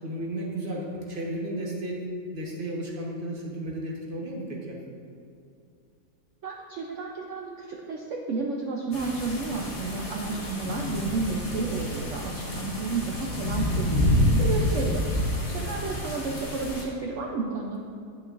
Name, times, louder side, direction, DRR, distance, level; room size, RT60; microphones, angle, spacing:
voice 1, 0.0-2.1 2.3-4.8 15.6-16.0, right 1 dB, 40° right, -2 dB, 1.0 m, -34 dB
voice 2, 6.4-17.8, right 3 dB, 65° right, -1 dB, 0.8 m, -32 dB
sound 1, 8.9-16.8, left 1 dB, 25° left, 1.0 m, -28 dB
9.7 x 6.2 x 2.5 m, 2.5 s
omnidirectional pair, 1.8 m